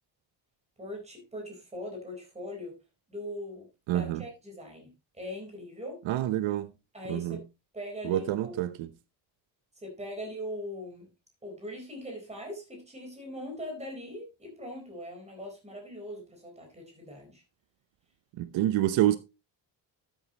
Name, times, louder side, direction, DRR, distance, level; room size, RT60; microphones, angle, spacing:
voice 1, 0.8-2.7 3.1-6.0 6.9-7.5 7.7-8.6 9.8-11.1 11.4-17.4, left 1 dB, 15° right, 4.1 m, -41 dB
voice 2, 3.9-4.2 6.1-6.7 7.1-7.4 8.0-8.9 18.4-19.2, right 13 dB, 80° right, 0.8 m, -27 dB
12.5 x 8.4 x 2.9 m
cardioid pair, 175°, 45 cm